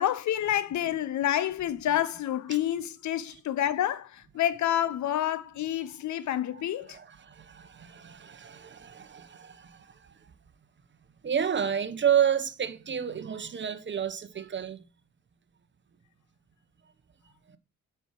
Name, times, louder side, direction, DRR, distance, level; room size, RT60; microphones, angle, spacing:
voice 1, 0.0-7.0, left 11 dB, 70° left, 0.9 m, -28 dB
voice 2, 6.9-10.3 11.2-14.9 17.5-17.6, right 8 dB, 40° right, 1.2 m, -30 dB
8.2 x 5.9 x 7.5 m
cardioid pair, 90°, 30 cm